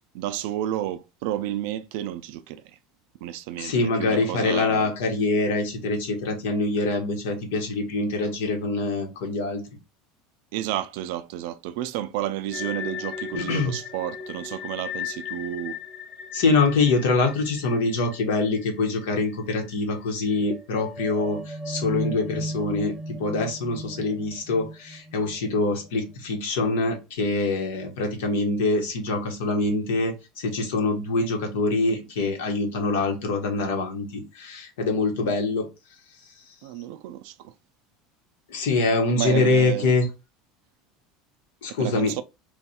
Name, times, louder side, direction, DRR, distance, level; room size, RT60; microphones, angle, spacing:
voice 1, 0.1-2.8 3.2-4.9 10.5-15.8 36.6-37.5 39.2-39.9 41.7-42.2, right 13 dB, 70° right, 0.4 m, -31 dB
voice 2, 3.6-9.6 13.3-13.7 16.3-35.7 38.5-40.1 41.6-42.1, left 3 dB, 90° left, 1.2 m, -24 dB
sound 1, 12.5-19.4 19.6-19.8 20.3-25.7, left 2 dB, 5° left, 0.5 m, -36 dB
3.3 x 2.3 x 4.2 m
supercardioid pair, 145°, 0 cm